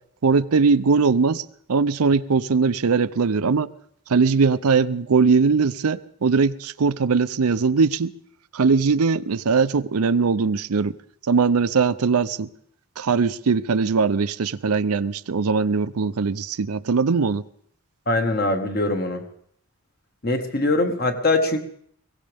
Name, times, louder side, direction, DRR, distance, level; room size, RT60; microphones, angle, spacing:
voice 1, 0.2-3.7 4.1-8.1 8.5-10.9 11.3-12.5 13.0-17.4, right 5 dB, 85° right, 0.6 m, -20 dB
voice 2, 18.1-19.2 20.2-21.6, left 2 dB, 45° left, 1.6 m, -22 dB
21.5 x 17.0 x 3.5 m
head